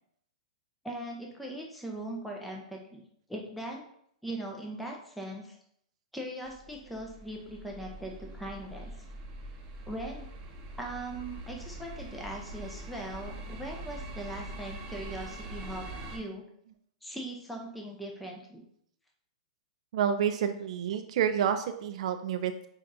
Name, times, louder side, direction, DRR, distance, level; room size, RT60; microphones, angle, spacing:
voice 1, 0.8-3.8 4.2-5.6 6.1-8.9 9.9-10.3 10.8-15.8 16.1-16.4 17.0-18.6, right 1 dB, ahead, -1 dB, 0.5 m, -40 dB
sound 1, 6.4-16.2, right 1 dB, 35° right, 0.7 m, -43 dB
voice 2, 19.9-22.7, right 8 dB, 65° right, 8 dB, 0.3 m, -29 dB
5.7 x 2.4 x 2.6 m, 0.68 s
hypercardioid pair, 135°, 4 cm